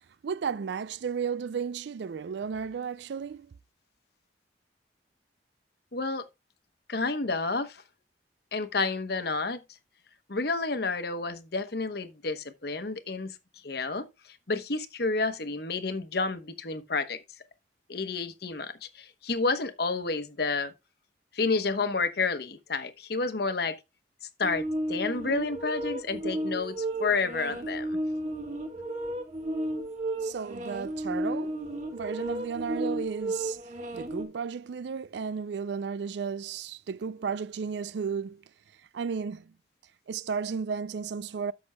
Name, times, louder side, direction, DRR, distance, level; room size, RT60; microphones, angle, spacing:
voice 1, 0.2-3.5 30.2-31.5 31.9-33.6 34.0-38.4 38.9-39.5 40.1-41.5, right 6 dB, 65° right, 0.4 m, -33 dB
voice 2, 5.9-6.2 6.9-7.8 8.5-9.6 10.3-13.4 13.6-14.1 14.5-17.2 17.9-20.7 21.3-23.8 24.2-24.6 24.9-28.0, left 3 dB, 55° left, 1.0 m, -30 dB
sound 1, 24.4-34.2, right 1 dB, 40° right, 1.7 m, -33 dB
13.0 x 6.2 x 2.3 m
head